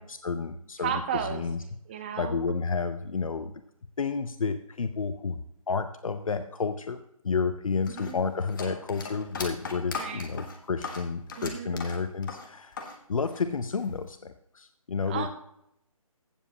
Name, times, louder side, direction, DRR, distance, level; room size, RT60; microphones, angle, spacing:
voice 1, 0.0-1.0 1.3-1.6 2.2-3.6 4.0-5.4 5.7-7.0 7.2-12.8 13.1-15.3, left 5 dB, 65° left, 9 dB, 0.7 m, -31 dB
voice 2, 0.8-1.4 1.9-2.4 7.9-8.3 10.0-10.2 11.4-11.8 15.1-15.3, right 8 dB, 20° right, 7 dB, 0.7 m, -33 dB
sound 1, 7.9-13.0 13.2-14.1, left 4 dB, 35° left, 1.3 m, -38 dB
15.5 x 7.3 x 2.8 m, 0.76 s
figure-of-eight pair, 160°, 18 cm